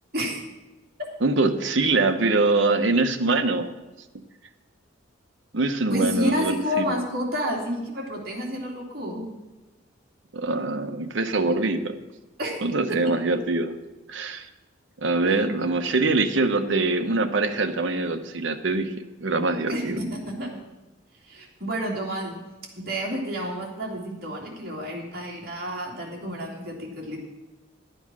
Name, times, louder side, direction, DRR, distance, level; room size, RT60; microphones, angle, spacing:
voice 1, 1.2-3.7 5.5-7.0 10.3-11.9 12.6-13.7 14.1-14.5 15.0-18.9 19.2-20.0, right 3 dB, 70° right, 8 dB, 0.9 m, -23 dB
voice 2, 5.9-9.2 12.4-12.5 13.0-13.1 15.2-15.4 19.7-20.5 21.3-22.3 22.9-27.2, equal, 50° right, -2 dB, 2.7 m, -30 dB
11.5 x 7.9 x 6.2 m, 1.1 s
head